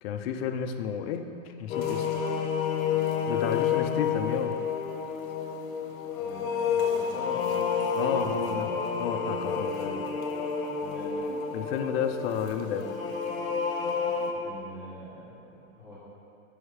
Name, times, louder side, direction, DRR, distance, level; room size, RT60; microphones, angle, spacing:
voice 1, 0.0-2.1 3.3-4.5 8.0-8.7 9.0-10.0 11.5-12.9, left 8 dB, 50° left, 7 dB, 0.5 m, -31 dB
sound 1, 1.7-14.3, left 6 dB, 75° left, 0.9 m, -30 dB
voice 2, 6.1-7.7 8.2-8.7 10.8-11.2 14.3-16.0, equal, 5° right, -11 dB, 1.5 m, -44 dB
7.7 x 5.5 x 3.3 m, 2.6 s
supercardioid pair, 150°, 41 cm